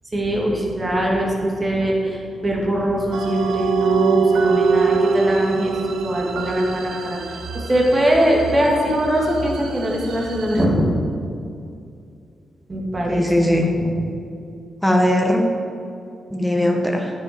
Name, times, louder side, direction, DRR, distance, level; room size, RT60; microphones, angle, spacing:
voice 1, 0.1-10.9 12.7-13.9, equal, 30° right, -2 dB, 2.3 m, -22 dB
sound 1, 3.1-10.6, right 5 dB, 85° right, 0.7 m, -23 dB
voice 2, 13.1-13.6 14.8-15.5 16.3-17.1, left 1 dB, ahead, 1 dB, 1.2 m, -19 dB
9.7 x 7.8 x 4.5 m, 2.4 s
cardioid pair, 75°, 0 cm